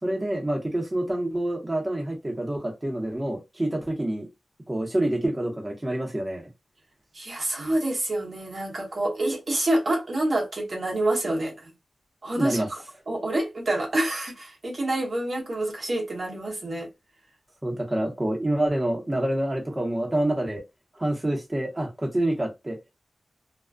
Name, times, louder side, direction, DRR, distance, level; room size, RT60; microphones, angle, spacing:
voice 1, 0.0-4.3 4.7-6.5 12.3-12.7 17.6-20.6 21.0-22.8, right 1 dB, 25° right, 0.9 m, -27 dB
voice 2, 7.1-11.6 12.2-12.6 13.1-16.9, right 1 dB, 60° right, 1.1 m, -27 dB
2.5 x 2.2 x 2.3 m
cardioid pair, 55°, 0 cm